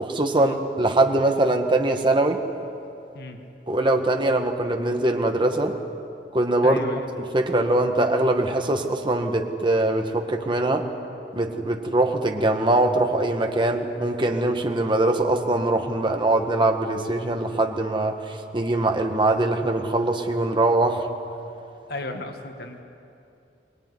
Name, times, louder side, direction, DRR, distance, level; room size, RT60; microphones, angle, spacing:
voice 1, 0.0-2.4 3.7-5.8 6.3-6.9 7.3-10.9 11.3-21.1, right 2 dB, 30° right, 4 dB, 1.7 m, -22 dB
voice 2, 6.6-7.1 21.9-22.8, left 2 dB, 65° left, 4 dB, 2.0 m, -34 dB
23.0 x 21.0 x 9.8 m, 2.7 s
head